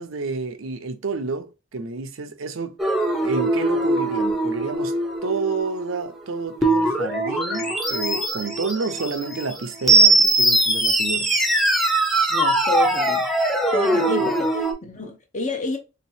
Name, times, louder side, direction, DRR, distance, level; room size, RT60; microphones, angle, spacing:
voice 1, 0.0-2.8 3.2-4.9 5.2-11.3 14.2-14.4, right 4 dB, 85° right, 0.7 m, -29 dB
sound 1, 2.8-14.7, right 2 dB, ahead, 0.7 m, -21 dB
voice 2, 12.3-13.3 13.7-15.8, left 3 dB, 40° left, 0.9 m, -29 dB
3.5 x 2.9 x 2.8 m
head